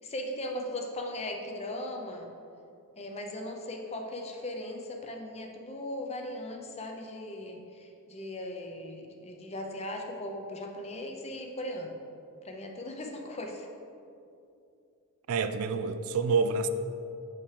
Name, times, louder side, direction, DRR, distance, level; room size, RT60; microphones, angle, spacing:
voice 1, 0.0-2.3 3.0-12.0 12.4-13.7, left 1 dB, 30° left, 2 dB, 0.6 m, -38 dB
voice 2, 15.3-16.7, right 4 dB, 70° right, 10 dB, 0.3 m, -27 dB
6.9 x 5.7 x 3.3 m, 2.7 s
head